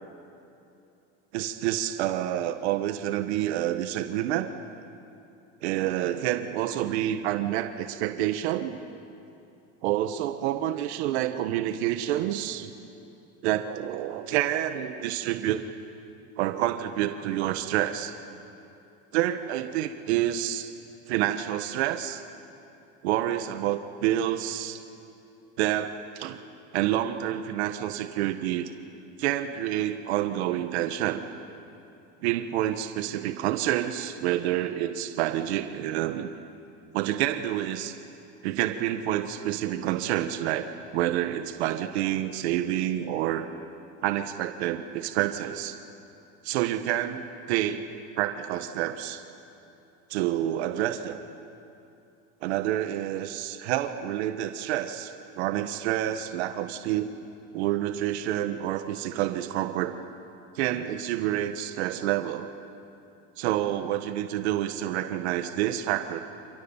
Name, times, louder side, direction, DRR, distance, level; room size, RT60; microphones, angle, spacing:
voice 1, 1.3-4.5 5.6-8.8 9.8-12.7 13.4-15.6 16.4-18.1 19.1-20.7 21.1-22.2 23.0-24.8 25.6-26.4 26.7-28.7 29.2-31.2 32.2-36.3 36.9-37.9 38.4-43.5 44.0-45.7 46.4-49.2 50.1-51.2 52.4-57.1 57.5-59.9 60.5-62.5 63.4-66.2, right 12 dB, 85° right, 7 dB, 1.6 m, -28 dB
28.5 x 28.0 x 7.4 m, 2.7 s
cardioid pair, 175°, 32 cm